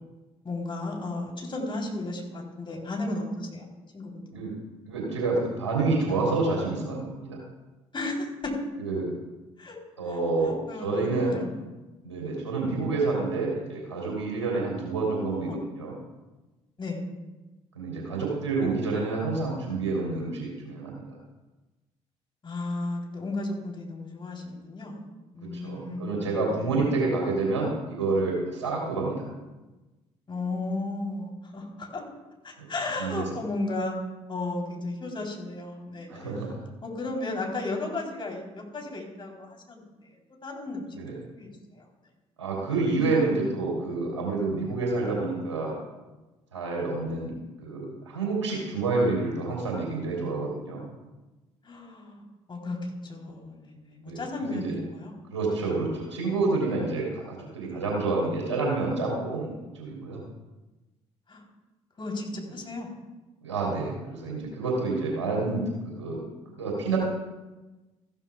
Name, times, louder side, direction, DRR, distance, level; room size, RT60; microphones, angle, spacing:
voice 1, 0.4-3.7 3.9-4.2 7.9-8.5 9.6-9.8 10.1-11.6 15.1-15.6 16.8-17.0 22.4-25.0 25.3-26.9 30.3-32.0 32.4-34.0 34.3-36.4 36.8-40.2 40.4-40.8 41.3-41.8 51.6-52.2 52.5-55.1 61.3-61.4 62.0-62.9, left 2 dB, 35° left, 0 dB, 3.6 m, -34 dB
voice 2, 4.8-7.4 8.8-9.1 10.0-10.5 10.8-11.4 12.0-15.5 15.8-15.9 17.7-21.2 25.5-29.3 32.6-32.7 33.0-33.2 36.1-36.6 41.0-41.1 42.4-45.7 46.5-47.3 47.6-50.8 54.0-54.7 55.3-57.2 57.5-60.2 63.4-66.2 66.5-67.0, right 3 dB, 90° right, -2 dB, 3.3 m, -28 dB
15.0 x 13.0 x 2.4 m, 1.1 s
hypercardioid pair, 50°, 15 cm